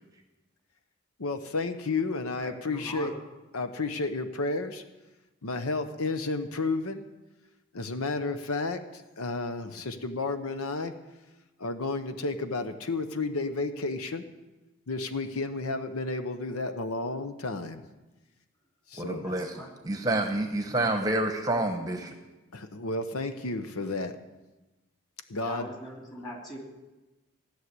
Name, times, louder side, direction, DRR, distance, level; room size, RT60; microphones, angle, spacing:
voice 1, 1.2-3.1 3.5-4.8 5.4-7.0 7.7-10.9 11.6-14.2 14.9-17.8 18.9-19.3 22.5-24.2 25.3-25.7, left 3 dB, 90° left, 9 dB, 0.9 m, -32 dB
voice 2, 2.4-3.1 19.2-19.7 25.3-26.6, equal, 20° left, -1 dB, 3.0 m, -41 dB
voice 3, 19.0-19.5 19.8-22.1, right 2 dB, 15° right, 4 dB, 0.9 m, -28 dB
16.5 x 6.6 x 9.6 m, 1.1 s
head